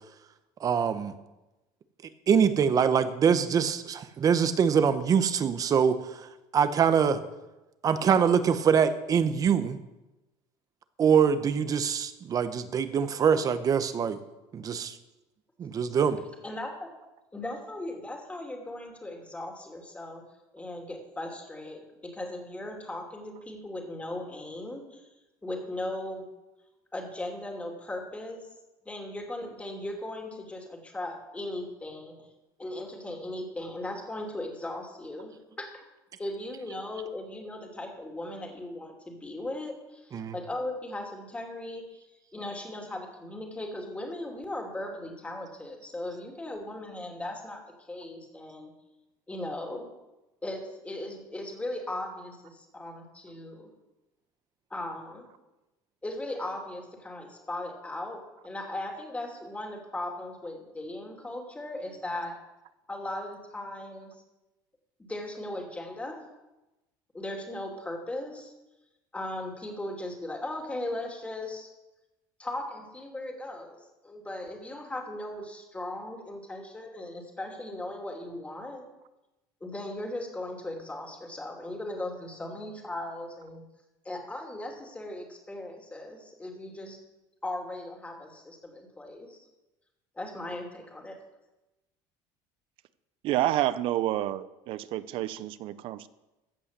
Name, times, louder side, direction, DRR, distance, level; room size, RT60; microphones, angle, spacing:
voice 1, 0.6-1.1 2.3-6.2 6.5-7.2 7.8-9.8 11.0-14.2 14.5-15.0 15.6-16.2 40.1-40.3, right 7 dB, 35° right, 12 dB, 1.0 m, -24 dB
voice 2, 16.4-16.9 17.3-20.2 20.5-25.1 25.4-26.3 26.9-28.5 28.8-32.1 32.6-35.9 36.2-42.0 42.3-48.7 49.3-49.9 50.4-53.7 54.7-55.3 56.0-62.3 62.9-64.2 65.1-66.2 67.1-68.5 69.1-71.7 72.4-73.8 74.0-78.8 79.6-83.6 84.0-87.0 87.4-89.5 90.2-91.2, left 1 dB, 15° left, 1 dB, 2.7 m, -38 dB
voice 3, 93.2-96.1, right 14 dB, 60° right, 16 dB, 0.6 m, -29 dB
15.0 x 5.6 x 7.4 m, 1.0 s
cardioid pair, 120°, 10 cm